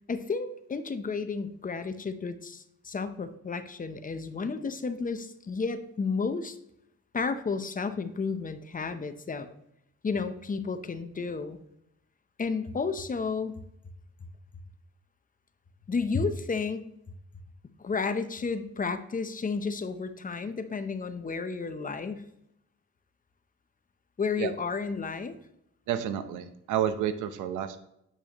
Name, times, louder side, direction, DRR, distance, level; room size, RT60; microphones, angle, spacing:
voice 1, 0.1-6.6 7.1-9.5 10.0-11.6 12.4-13.6 15.9-16.8 17.8-22.3 24.2-25.4, left 4 dB, 25° left, 9 dB, 0.7 m, -32 dB
voice 2, 25.9-27.8, right 10 dB, 85° right, 10 dB, 0.8 m, -30 dB
8.2 x 5.5 x 2.9 m, 0.79 s
cardioid pair, 90°, 30 cm